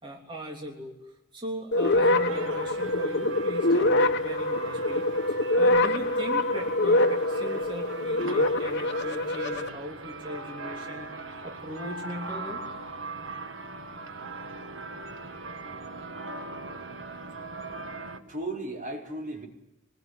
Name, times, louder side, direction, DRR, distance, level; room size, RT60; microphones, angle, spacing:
voice 1, 0.0-0.9 1.3-11.1 11.4-12.6, equal, 25° right, 0 dB, 3.3 m, -39 dB
sound 1, 1.7-9.7, left 2 dB, 60° left, 1.3 m, -25 dB
sound 2, 1.8-18.2, right 3 dB, 75° right, 1.7 m, -40 dB
voice 2, 17.7-19.5, right 2 dB, 45° right, 0 dB, 5.0 m, -36 dB
24.5 x 21.0 x 9.9 m, 0.90 s
head